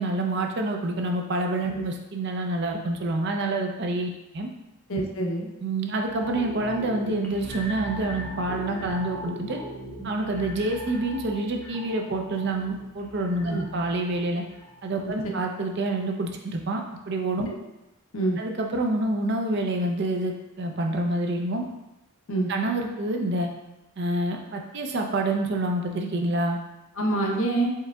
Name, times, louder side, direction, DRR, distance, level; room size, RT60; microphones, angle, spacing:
voice 1, 0.0-4.5 5.6-9.6 10.0-14.4 14.8-17.5 18.4-21.7 22.5-23.5 24.0-26.6, right 2 dB, 50° right, 2 dB, 0.4 m, -27 dB
voice 2, 4.9-5.5 13.5-13.6 17.5-17.6 18.1-18.4 22.3-22.5 27.0-27.7, right 2 dB, 65° left, 0 dB, 0.6 m, -26 dB
sound 1, 6.1-15.4 15.8-15.9, left 1 dB, 5° left, 0.5 m, -39 dB
4.5 x 3.6 x 2.3 m, 0.94 s
head